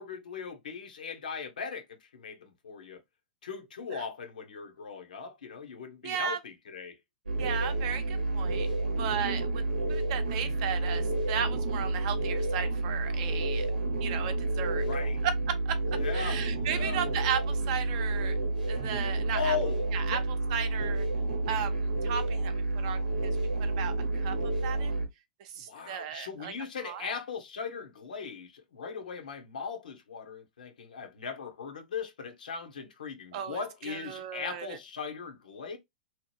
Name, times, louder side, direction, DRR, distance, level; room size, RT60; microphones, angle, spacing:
voice 1, 0.0-3.0 3.4-7.0 7.5-7.9 14.8-15.2 16.0-17.0 19.3-19.8 20.1-20.2 25.7-35.8, left 6 dB, 75° left, 0.9 m, -38 dB
voice 2, 6.0-6.4 7.4-8.7 9.0-9.6 9.9-13.7 14.0-14.8 15.2-15.8 16.1-18.4 18.7-19.6 19.9-20.2 20.5-21.0 21.5-21.7 22.0-23.3 23.6-23.9 24.2-24.3 24.6-24.9 25.6-26.5 26.8-27.1 33.3-33.6 33.9-34.7, right 8 dB, 50° right, 0.6 m, -35 dB
sound 1, 7.3-25.1, right 2 dB, 90° right, 0.7 m, -30 dB
2.9 x 2.1 x 3.1 m
hypercardioid pair, 110°, 4 cm